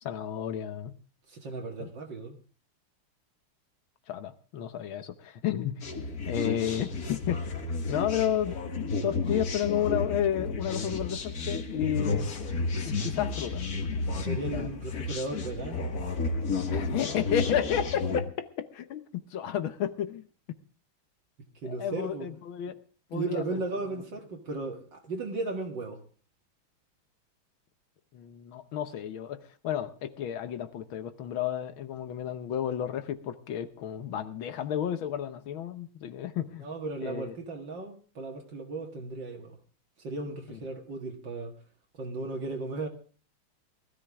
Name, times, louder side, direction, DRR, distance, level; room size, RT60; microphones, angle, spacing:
voice 1, 0.0-1.0 1.8-1.9 4.1-5.9 6.3-7.5 7.9-12.3 12.8-14.0 14.4-14.7 16.7-20.2 21.6-22.8 23.1-23.6 28.1-36.7 37.0-37.3 40.5-40.6, left 10 dB, 75° left, 1.8 m, -32 dB
voice 2, 1.3-2.4 14.1-15.8 21.6-22.3 23.1-26.0 36.6-39.6 40.0-41.5 42.0-42.9, right 3 dB, 60° right, 2.5 m, -35 dB
sound 1, 5.8-18.2, left 3 dB, 45° left, 2.0 m, -32 dB
19.0 x 13.5 x 3.5 m
omnidirectional pair, 2.3 m